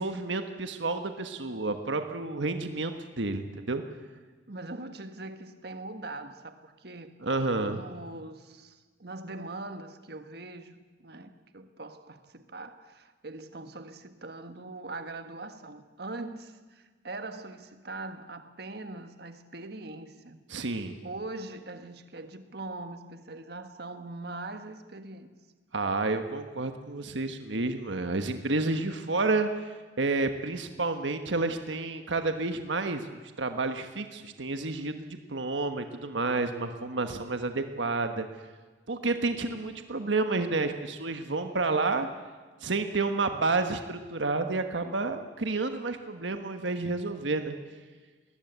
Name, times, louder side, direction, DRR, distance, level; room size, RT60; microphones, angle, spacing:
voice 1, 0.0-3.8 7.2-7.8 20.5-21.0 25.7-38.3 38.9-42.1 42.6-47.5, right 3 dB, 85° right, 1.4 m, -30 dB
voice 2, 4.5-7.2 7.7-20.4 21.0-25.3, right 2 dB, 60° right, 1.6 m, -42 dB
20.5 x 20.0 x 8.2 m
head